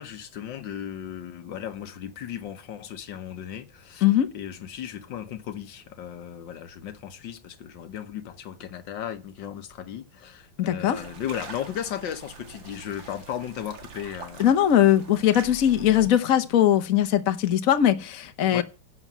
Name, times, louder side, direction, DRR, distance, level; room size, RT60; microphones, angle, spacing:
voice 1, 0.0-4.0 4.3-14.4 18.5-18.6, left 10 dB, 80° left, 1.7 m, -36 dB
voice 2, 10.6-11.0 14.4-18.6, left 11 dB, 50° left, 1.3 m, -20 dB
sound 1, 10.9-16.1, right 5 dB, 90° right, 2.7 m, -44 dB
11.0 x 7.2 x 7.4 m
omnidirectional pair, 2.0 m